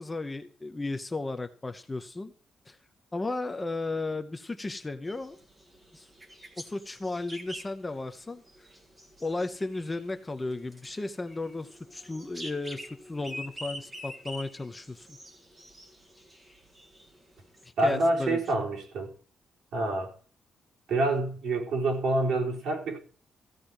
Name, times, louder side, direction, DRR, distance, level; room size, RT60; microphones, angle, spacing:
voice 1, 0.0-2.3 2.7-2.8 3.1-5.4 5.9-6.1 6.6-8.7 9.2-15.2 17.6-18.4, left 2 dB, 15° left, 0.7 m, -34 dB
sound 1, 5.0-17.7, equal, 15° right, 1.7 m, -47 dB
voice 2, 17.8-19.1 19.7-20.1 20.9-23.0, right 2 dB, 60° right, 4.2 m, -27 dB
15.0 x 5.2 x 8.8 m
cardioid pair, 175°, 0 cm